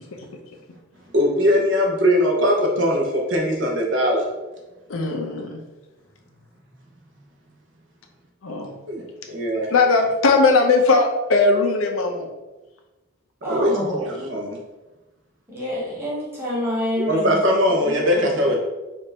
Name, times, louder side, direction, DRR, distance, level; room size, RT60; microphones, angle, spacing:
voice 1, 1.1-4.2 8.9-9.0 9.3-9.7 13.4-14.6 17.0-18.6, equal, 60° right, 0 dB, 0.9 m, -20 dB
voice 2, 4.9-5.6 8.4-8.7 9.7-12.3, left 3 dB, 80° left, 3 dB, 0.6 m, -19 dB
voice 3, 13.4-14.3 15.5-17.4 17.8-18.3, equal, 10° right, -6 dB, 1.3 m, -27 dB
4.5 x 2.6 x 4.4 m, 1.1 s
head